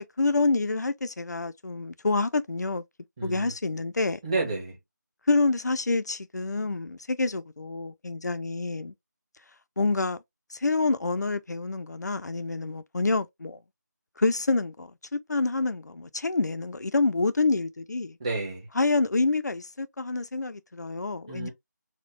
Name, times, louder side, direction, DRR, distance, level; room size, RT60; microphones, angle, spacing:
voice 1, 0.0-2.8 3.2-4.2 5.3-8.9 9.8-10.2 10.5-13.6 14.2-18.2 18.8-21.5, left 3 dB, 65° left, 0.6 m, -27 dB
voice 2, 3.2-3.5 4.2-4.8 18.2-18.7 21.3-21.5, right 3 dB, 15° right, 1.4 m, -30 dB
4.2 x 2.3 x 3.3 m
figure-of-eight pair, 165°, 10 cm